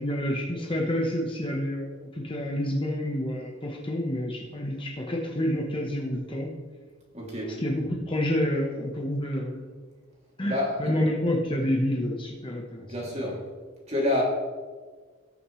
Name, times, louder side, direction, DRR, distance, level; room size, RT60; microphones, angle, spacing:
voice 1, 0.0-6.5 7.6-9.7 10.4-12.9 13.2-13.3, left 1 dB, 25° left, -1 dB, 1.1 m, -28 dB
voice 2, 7.1-7.6 10.5-10.9 12.8-13.5 13.9-14.2, left 1 dB, 30° right, -3 dB, 2.7 m, -28 dB
19.5 x 6.6 x 3.2 m, 1.5 s
head